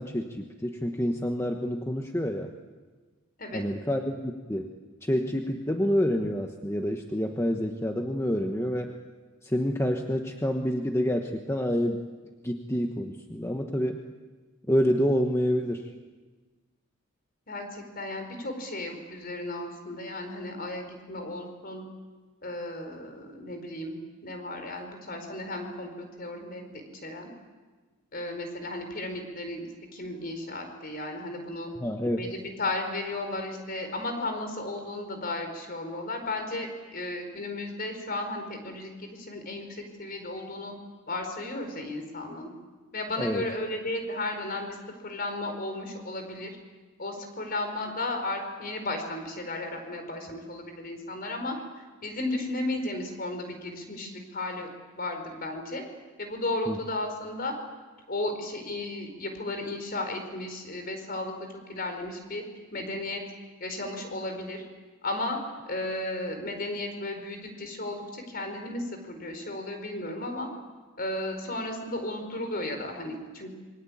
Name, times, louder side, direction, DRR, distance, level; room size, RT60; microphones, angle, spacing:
voice 1, 0.0-2.5 3.5-4.7 5.0-8.9 9.4-12.0 12.4-14.0 14.7-15.9 31.8-32.2 43.2-43.4 56.7-56.8, equal, 10° left, 3 dB, 1.2 m, -28 dB
voice 2, 17.5-21.8 22.4-24.0 24.2-26.7 27.0-27.3 28.1-31.7 32.1-40.7 41.1-42.5 42.9-44.8 45.0-46.6 47.0-54.7 54.9-55.8 56.2-57.5 58.1-62.4 62.7-63.2 63.6-64.6 65.0-65.4 65.7-70.5 71.0-73.5, left 2 dB, 45° left, 6 dB, 4.7 m, -34 dB
27.0 x 23.5 x 8.7 m, 1.3 s
head